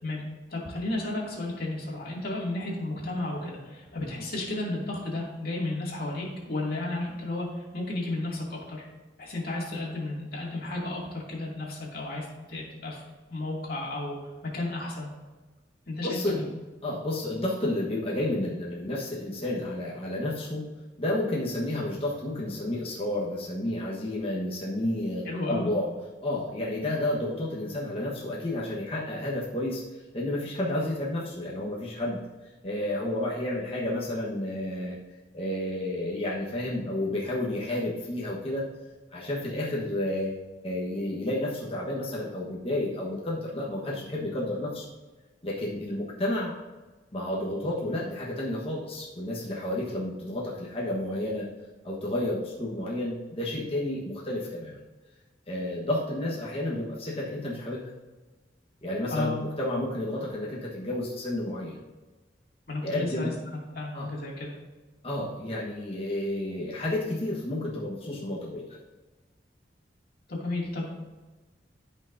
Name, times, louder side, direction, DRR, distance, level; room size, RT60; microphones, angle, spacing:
voice 1, 0.5-8.9 9.2-13.0 13.3-14.2 14.4-15.1 15.9-16.4 25.3-25.7 59.1-59.4 62.7-64.5 70.3-70.9, left 2 dB, 55° left, -3 dB, 2.5 m, -33 dB
voice 2, 16.0-16.5 16.8-20.6 21.0-25.9 26.2-29.8 30.1-32.2 32.6-35.0 35.3-38.7 39.1-44.8 45.4-46.5 47.1-51.5 51.8-54.8 55.5-57.9 58.8-61.8 62.8-63.3 63.9-64.1 65.0-68.8, left 1 dB, 35° left, -5 dB, 1.3 m, -31 dB
13.0 x 5.6 x 2.7 m, 1.2 s
head